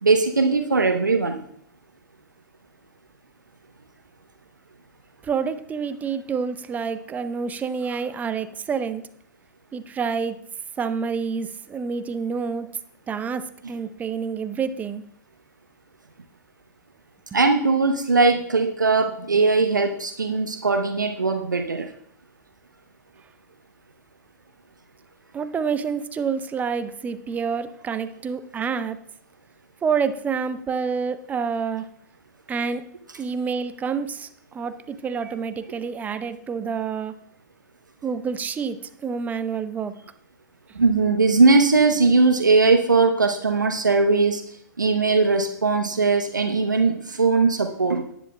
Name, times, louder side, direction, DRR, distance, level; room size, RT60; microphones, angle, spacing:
voice 1, 0.0-1.4 17.3-21.9 40.7-44.4 44.8-48.0, right 3 dB, 85° right, 5 dB, 0.8 m, -19 dB
voice 2, 5.2-9.0 9.7-10.4 10.8-12.7 13.1-15.0 25.3-29.0 29.8-31.9 32.5-32.8 33.2-37.1 38.0-40.0, right 6 dB, 15° right, 12 dB, 0.6 m, -28 dB
18.0 x 10.0 x 2.2 m, 0.69 s
figure-of-eight pair, 105°, 10 cm